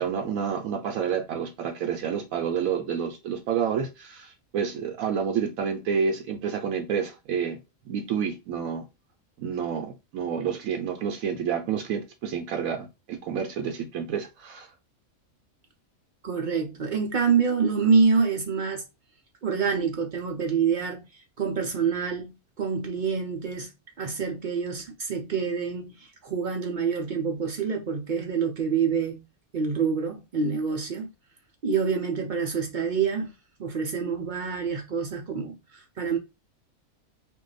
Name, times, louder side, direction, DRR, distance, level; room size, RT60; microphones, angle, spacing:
voice 1, 0.0-7.6 7.8-8.8 9.4-14.7, right 7 dB, 80° right, 1.0 m, -29 dB
voice 2, 16.2-18.8 19.4-23.7 24.0-29.2 29.5-31.1 31.6-33.3 33.6-36.2, right 5 dB, 60° right, 0.5 m, -26 dB
2.6 x 2.2 x 3.8 m
omnidirectional pair, 1.4 m